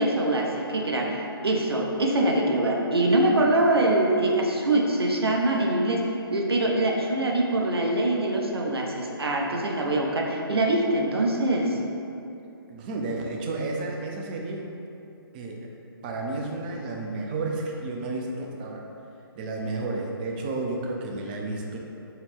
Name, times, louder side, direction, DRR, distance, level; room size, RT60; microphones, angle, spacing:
voice 1, 0.0-11.8, right 1 dB, 80° right, 0 dB, 0.6 m, -24 dB
voice 2, 12.7-14.7 15.3-15.7 16.0-18.8 19.3-21.8, right 2 dB, 20° right, 0 dB, 0.3 m, -31 dB
4.5 x 2.1 x 3.4 m, 2.7 s
figure-of-eight pair, 135°, 13 cm